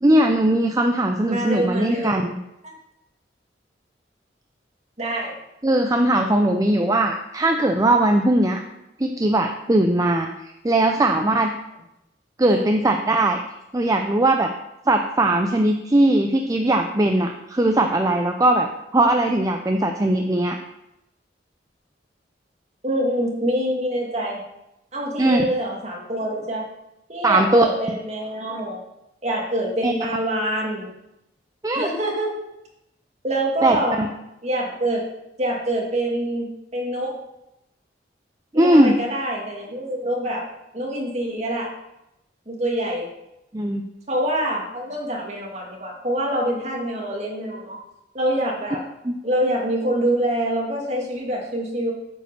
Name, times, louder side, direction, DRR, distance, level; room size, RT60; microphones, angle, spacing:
voice 1, 0.0-2.4 5.6-8.6 9.0-11.5 12.4-13.4 13.7-14.5 14.9-20.6 25.2-25.4 27.2-27.6 29.8-29.9 31.6-31.9 33.6-34.1 38.5-39.0 43.5-43.8 49.0-49.2, right 1 dB, 20° right, 4 dB, 0.5 m, -19 dB
voice 2, 1.3-2.3 2.6-2.7 5.0-5.3 10.9-11.0 12.4-12.7 22.8-24.4 24.9-26.6 27.1-28.8 29.2-30.9 31.7-32.3 33.2-34.0 34.4-35.0 35.4-37.2 38.5-40.4 40.7-41.7 42.5-43.1 44.1-47.8 48.1-48.8 49.2-51.9, right 1 dB, 40° right, -1 dB, 2.1 m, -25 dB
8.7 x 5.2 x 6.7 m, 0.87 s
head